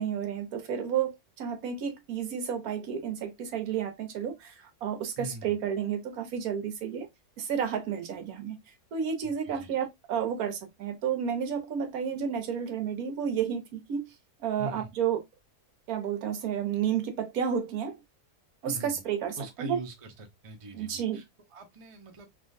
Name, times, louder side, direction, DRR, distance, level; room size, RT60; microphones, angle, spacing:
voice 1, 0.0-7.1 7.4-8.6 8.9-14.1 14.4-15.2 15.9-18.0 18.6-19.8 20.7-21.2, right 8 dB, 70° right, 1.2 m, -31 dB
voice 2, 19.4-21.2 21.5-22.3, right 2 dB, 45° right, 0.4 m, -41 dB
3.5 x 2.5 x 2.5 m
omnidirectional pair, 1.6 m